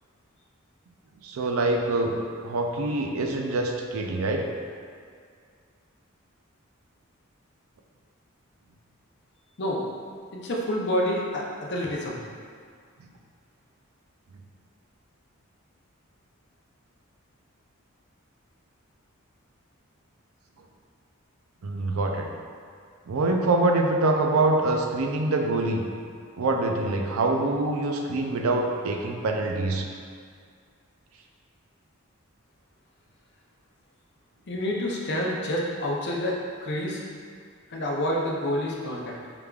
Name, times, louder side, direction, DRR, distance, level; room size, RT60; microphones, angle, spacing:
voice 1, 1.2-2.1 2.4-4.5 21.6-22.3 23.1-25.8 26.4-29.8, right 2 dB, 85° right, 3 dB, 0.4 m, -25 dB
voice 2, 10.3-12.2 34.5-37.0 37.7-39.2, left 1 dB, 55° left, -2 dB, 0.6 m, -28 dB
4.9 x 3.4 x 2.3 m, 2.1 s
head